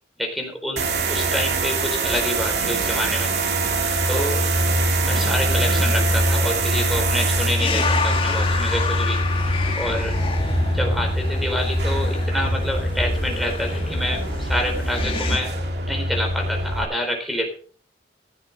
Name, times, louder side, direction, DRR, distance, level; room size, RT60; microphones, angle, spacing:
voice 1, 0.2-3.3 4.1-4.4 5.0-9.2 9.8-10.1 10.7-15.5 15.9-17.5, equal, ahead, 2 dB, 4.2 m, -27 dB
sound 1, 0.8-16.8, right 1 dB, 65° right, 2.3 m, -23 dB
sound 2, 7.6-15.4, left 2 dB, 30° left, 1.7 m, -27 dB
16.0 x 8.1 x 5.4 m, 0.43 s
head